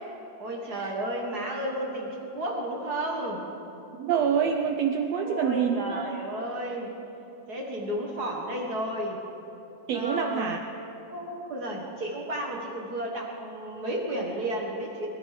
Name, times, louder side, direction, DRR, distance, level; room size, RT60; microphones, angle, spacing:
voice 1, 0.4-3.4 5.2-6.9 7.5-9.2 9.9-10.6 11.1-15.1, right 1 dB, 45° right, -1 dB, 1.4 m, -32 dB
voice 2, 4.0-6.2 9.9-10.6, right 7 dB, 85° right, 3 dB, 1.4 m, -26 dB
22.0 x 12.5 x 5.0 m, 3.0 s
omnidirectional pair, 3.9 m